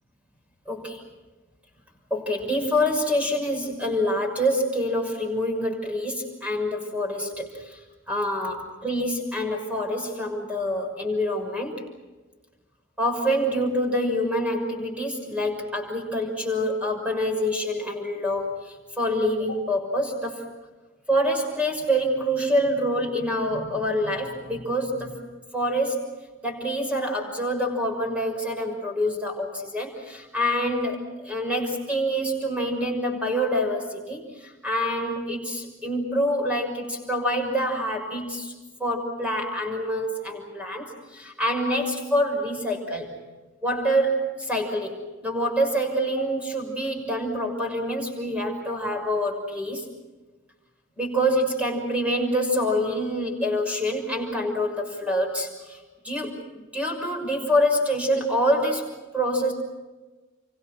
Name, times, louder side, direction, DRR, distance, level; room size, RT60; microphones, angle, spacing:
voice 1, 0.7-1.0 2.1-7.8 8.1-11.8 13.0-20.5 21.1-25.2 25.5-26.0 26.4-38.5 38.8-43.1 43.6-49.9 51.0-55.8 56.0-59.5, equal, 5° right, 3 dB, 6.2 m, -26 dB
29.5 x 25.0 x 6.3 m, 1.2 s
head